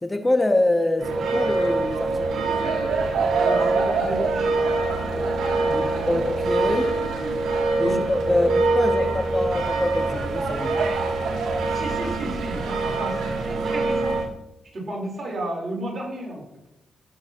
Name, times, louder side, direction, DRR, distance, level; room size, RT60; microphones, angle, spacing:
voice 1, 0.0-2.5 5.7-6.9 7.8-10.8, left 2 dB, 20° left, 7 dB, 1.0 m, -25 dB
sound 1, 1.0-14.3, right 3 dB, 85° right, 1.6 m, -24 dB
voice 2, 3.4-4.6 7.7-8.0 8.5-9.1 11.7-14.2 14.7-16.4, right 1 dB, 50° right, -2 dB, 4.2 m, -33 dB
15.5 x 7.0 x 3.0 m, 0.85 s
cardioid pair, 65°, 0 cm